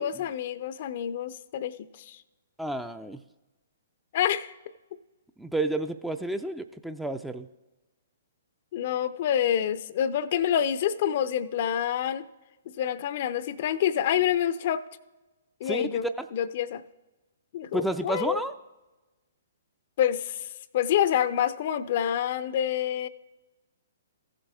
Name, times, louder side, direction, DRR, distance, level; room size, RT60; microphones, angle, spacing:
voice 1, 0.0-2.2 4.1-4.5 8.7-12.3 12.7-14.8 15.6-16.0 16.3-16.8 17.5-18.4 20.0-20.5 20.7-23.1, left 10 dB, 50° left, 14 dB, 0.5 m, -27 dB
voice 2, 2.6-3.2 5.4-7.5 15.6-16.3 17.7-18.5, right 1 dB, 5° right, 9 dB, 0.4 m, -31 dB
15.0 x 7.5 x 3.6 m, 1.1 s
figure-of-eight pair, 125°, 0 cm